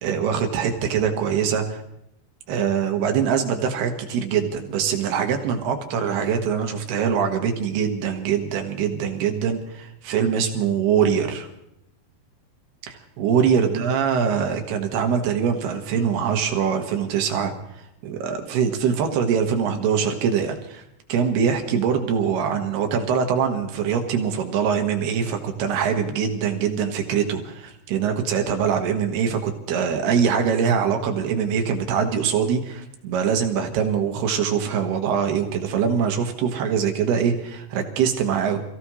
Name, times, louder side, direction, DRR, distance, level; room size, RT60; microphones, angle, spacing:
voice 1, 0.0-1.8 2.5-11.5 12.9-17.5 18.0-20.8 21.1-38.6, right 7 dB, 80° right, 4 dB, 3.7 m, -23 dB
28.0 x 16.0 x 3.2 m, 0.82 s
omnidirectional pair, 4.6 m